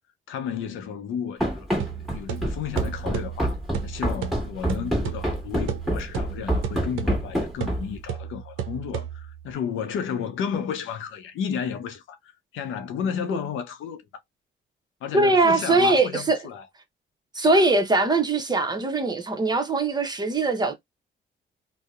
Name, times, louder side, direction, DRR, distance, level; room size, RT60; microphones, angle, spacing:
voice 1, 0.3-1.7 2.1-3.6 3.8-14.1 15.0-16.7, left 7 dB, 80° left, 0.6 m, -32 dB
Run, 1.4-8.0, right 1 dB, ahead, 1.3 m, -27 dB
sound 1, 1.8-9.5, right 9 dB, 85° right, 0.5 m, -34 dB
voice 2, 15.1-16.4 17.3-20.7, right 2 dB, 20° right, 0.7 m, -21 dB
2.7 x 2.0 x 2.3 m
cardioid pair, 90°, 20 cm